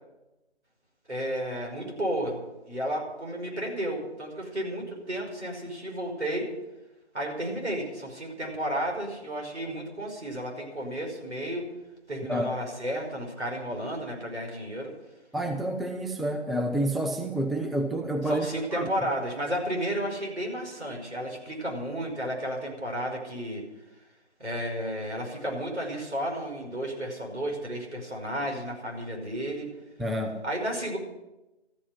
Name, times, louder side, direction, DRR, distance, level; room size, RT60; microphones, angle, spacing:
voice 1, 1.1-2.4 2.7-6.5 7.1-11.7 12.1-14.9 18.3-23.6 24.4-29.7 30.4-31.0, equal, 80° right, 1 dB, 5.5 m, -32 dB
voice 2, 15.3-18.9 30.0-30.4, right 1 dB, ahead, 3 dB, 0.4 m, -29 dB
13.5 x 9.4 x 7.6 m, 1.0 s
figure-of-eight pair, 170°, 34 cm